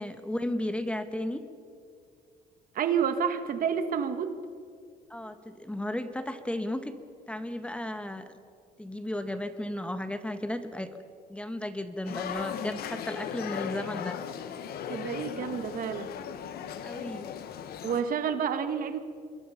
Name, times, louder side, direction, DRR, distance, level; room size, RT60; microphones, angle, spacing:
voice 1, 0.0-1.4 5.1-6.9 7.3-8.3 8.8-10.9 11.3-14.2 16.8-17.3, left 1 dB, 5° left, 9 dB, 1.3 m, -34 dB
voice 2, 2.7-4.4 14.9-16.1 17.8-19.0, right 7 dB, 55° right, 9 dB, 1.6 m, -29 dB
sound 1, 12.1-18.0, left 8 dB, 65° left, 1.4 m, -37 dB
26.0 x 22.0 x 5.7 m, 2.3 s
cardioid pair, 110°, 17 cm